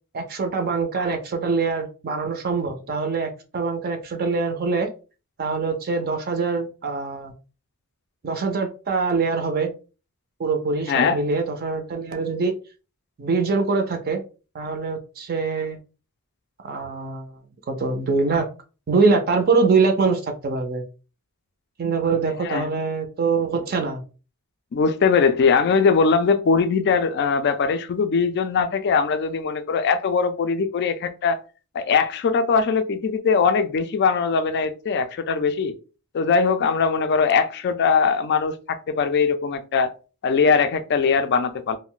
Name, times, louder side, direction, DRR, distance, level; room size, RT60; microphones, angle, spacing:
voice 1, 0.1-4.9 5.4-7.3 8.2-9.7 10.4-12.5 13.2-14.2 14.5-15.8 16.6-17.3 17.7-18.5 18.9-20.8 21.8-24.0, right 4 dB, 45° right, 0.4 m, -23 dB
voice 2, 10.9-11.2 22.4-22.7 24.7-31.4 31.7-35.7 36.1-39.9 40.2-41.8, left 5 dB, 50° left, 0.3 m, -21 dB
2.4 x 2.1 x 3.7 m
head